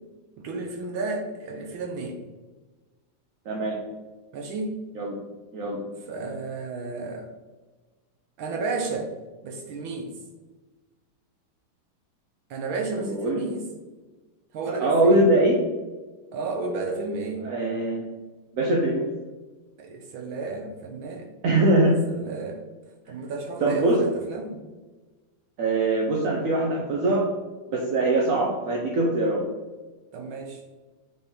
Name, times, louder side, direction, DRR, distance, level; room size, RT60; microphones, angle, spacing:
voice 1, 0.4-2.2 4.3-4.8 6.1-7.3 8.4-9.1 9.4-10.1 12.5-13.6 14.5-15.2 16.3-17.5 19.8-21.3 22.1-22.7 23.1-24.7 26.6-26.8 30.1-30.6, right 3 dB, 80° right, 2 dB, 1.7 m, -32 dB
voice 2, 3.5-3.8 4.9-5.2 5.5-5.9 13.0-13.4 14.7-15.6 17.4-18.1 18.5-19.1 21.4-22.1 23.1-23.2 23.6-24.1 25.6-27.3 27.7-29.5, right 1 dB, 55° right, -2 dB, 1.0 m, -22 dB
7.7 x 3.7 x 4.4 m, 1.3 s
omnidirectional pair, 2.2 m